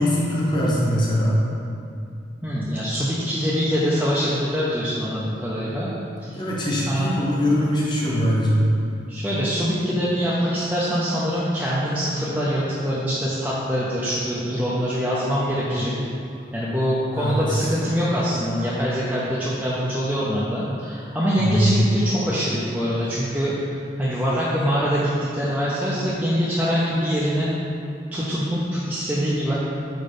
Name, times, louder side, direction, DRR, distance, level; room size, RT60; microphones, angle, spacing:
voice 1, 0.0-1.3 6.3-8.7 17.1-17.7 21.4-21.8, equal, 25° left, -5 dB, 1.0 m, -22 dB
voice 2, 2.4-5.9 6.2-6.4 6.9-7.4 9.1-15.9 16.5-23.5 24.0-27.5 28.1-29.5, equal, 10° right, -9 dB, 0.5 m, -24 dB
5.1 x 4.2 x 5.0 m, 2.5 s
head